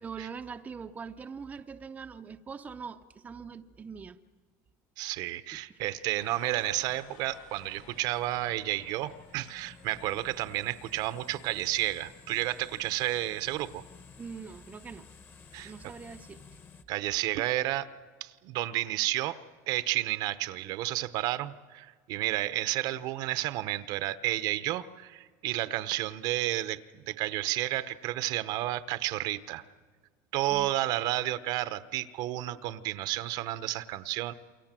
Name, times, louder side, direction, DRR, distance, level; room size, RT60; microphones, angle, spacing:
voice 1, 0.0-4.2 5.5-5.8 6.1-6.2 14.2-15.1 15.6-16.4 30.5-30.7, right 5 dB, 20° right, 0.6 m, -43 dB
voice 2, 5.0-13.8 15.5-15.7 16.9-17.9 18.2-19.4 19.7-29.6 30.3-34.3, right 15 dB, 60° right, 0.9 m, -31 dB
sound 1, 6.1-10.3, left 9 dB, 70° left, 1.8 m, -55 dB
sound 2, 6.2-16.8, left 5 dB, 30° left, 1.4 m, -54 dB
28.5 x 23.0 x 7.5 m
cardioid pair, 135°, 8 cm